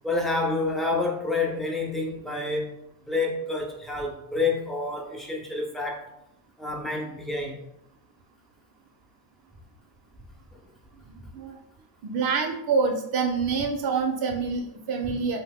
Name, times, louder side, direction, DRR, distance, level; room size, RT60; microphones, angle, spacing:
voice 1, 0.0-6.1 6.6-7.7, left 3 dB, ahead, 0.5 m, -28 dB
voice 2, 11.1-11.6 12.0-15.4, right 5 dB, 60° right, 0.5 m, -26 dB
2.9 x 2.1 x 3.5 m
cardioid pair, 100°, 42 cm